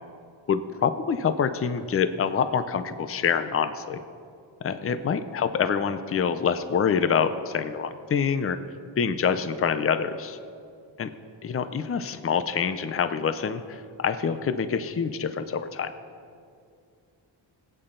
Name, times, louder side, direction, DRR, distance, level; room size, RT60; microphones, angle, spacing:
voice 1, 0.5-4.0 4.6-8.6 9.0-10.4 11.0-11.1 11.4-15.9, left 6 dB, 30° left, 11 dB, 0.6 m, -26 dB
21.5 x 8.9 x 3.8 m, 2.4 s
wide cardioid pair, 120°, 47 cm